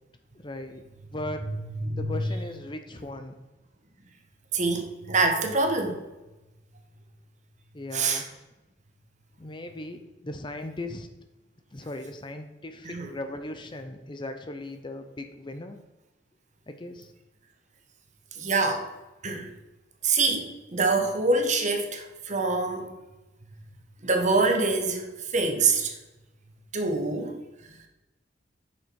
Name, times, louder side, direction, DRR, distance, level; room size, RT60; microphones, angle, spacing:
voice 1, 0.4-0.8 1.1-1.5 2.0-3.4 7.7-8.3 9.4-11.1 11.7-15.8 16.7-17.1, left 1 dB, 25° left, 7 dB, 0.6 m, -38 dB
voice 2, 4.5-6.0 7.9-8.2 12.8-13.1 18.4-18.9 19.2-19.5 20.0-22.9 24.0-25.1 25.3-25.9 26.7-27.4, right 3 dB, 40° right, 4 dB, 1.3 m, -25 dB
8.7 x 6.4 x 4.7 m, 1.0 s
head